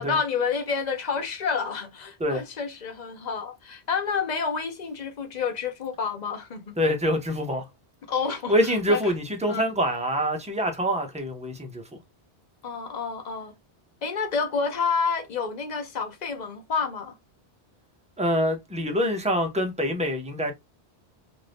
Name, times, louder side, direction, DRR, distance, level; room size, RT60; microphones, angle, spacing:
voice 1, 0.0-6.8 8.1-9.0 9.5-9.6 12.6-13.5 14.0-17.1, left 5 dB, 45° left, 0.7 m, -29 dB
voice 2, 6.8-7.7 8.5-12.0 18.2-20.5, equal, 10° right, 0.4 m, -25 dB
2.6 x 2.5 x 3.3 m
omnidirectional pair, 1.1 m